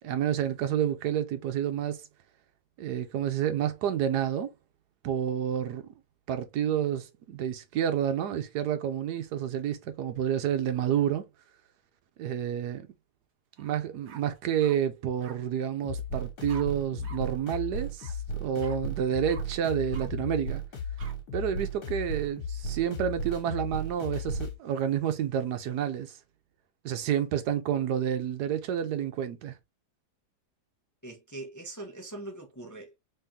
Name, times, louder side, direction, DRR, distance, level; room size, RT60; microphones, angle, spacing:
voice 1, 0.0-2.0 2.8-4.5 5.0-5.8 6.3-11.3 12.2-12.9 13.6-20.6 21.3-26.2 26.8-29.5, right 9 dB, 75° right, 1.2 m, -29 dB
sound 1, 13.6-13.7 14.1-14.8 15.2-15.4 16.5-16.6 17.0-17.2 17.4-17.6 18.0-18.1 18.6-18.8 19.3-19.4 19.9-20.1 21.0-21.1, right 6 dB, 50° right, 0.9 m, -47 dB
sound 2, 15.8-24.6, left 1 dB, 70° left, 1.8 m, -35 dB
voice 2, 31.0-33.0, right 2 dB, 15° left, 0.6 m, -42 dB
3.7 x 3.4 x 2.8 m
omnidirectional pair, 1.8 m